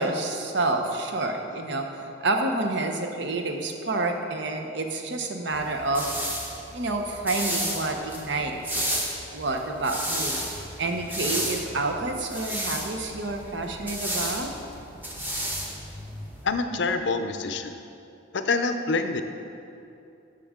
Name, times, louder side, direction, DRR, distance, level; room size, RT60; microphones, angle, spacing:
voice 1, 0.0-6.1 6.7-8.9 9.3-10.4 10.8-14.5, right 2 dB, 60° right, 4 dB, 0.8 m, -28 dB
sound 1, 5.5-16.5, equal, 10° right, 0.9 m, -33 dB
voice 2, 16.4-17.8 18.3-19.2, left 3 dB, 60° left, 8 dB, 0.5 m, -26 dB
12.5 x 6.1 x 3.7 m, 2.7 s
head